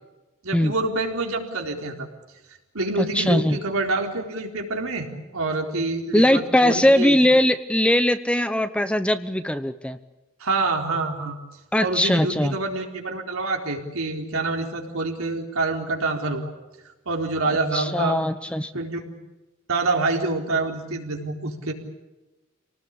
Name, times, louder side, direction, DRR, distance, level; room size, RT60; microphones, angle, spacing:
voice 1, 0.4-2.1 2.7-7.2 10.4-11.4 11.8-16.5 17.1-18.2 18.7-19.0 19.7-21.7, right 3 dB, 70° right, 1 dB, 4.1 m, -26 dB
voice 2, 3.0-3.6 6.1-10.0 11.7-12.5 17.4-18.7, left 1 dB, 5° left, 11 dB, 0.8 m, -20 dB
27.5 x 18.5 x 8.5 m, 1.1 s
head